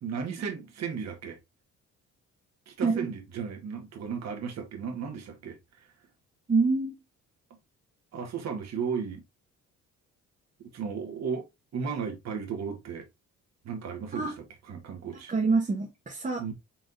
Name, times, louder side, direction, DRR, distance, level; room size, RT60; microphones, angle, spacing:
voice 1, 0.0-1.4 2.7-5.6 8.1-9.2 10.7-11.4 11.7-13.0 13.6-15.3 16.4-16.5, right 6 dB, 60° right, 1.3 m, -35 dB
voice 2, 6.5-6.9 14.1-14.3 15.3-16.4, right 4 dB, 25° right, 1.0 m, -26 dB
4.2 x 3.5 x 2.4 m
cardioid pair, 90°, 30 cm